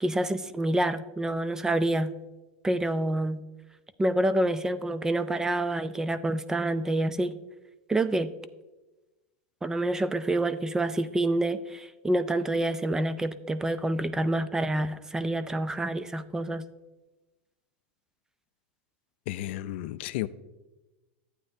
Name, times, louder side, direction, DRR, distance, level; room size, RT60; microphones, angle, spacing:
voice 1, 0.0-2.1 2.6-3.4 4.0-7.3 7.9-8.3 9.6-16.6, right 1 dB, 10° right, 0.3 m, -27 dB
voice 2, 19.3-20.3, left 15 dB, 65° left, 0.4 m, -33 dB
12.0 x 8.7 x 2.7 m
supercardioid pair, 135°, 6 cm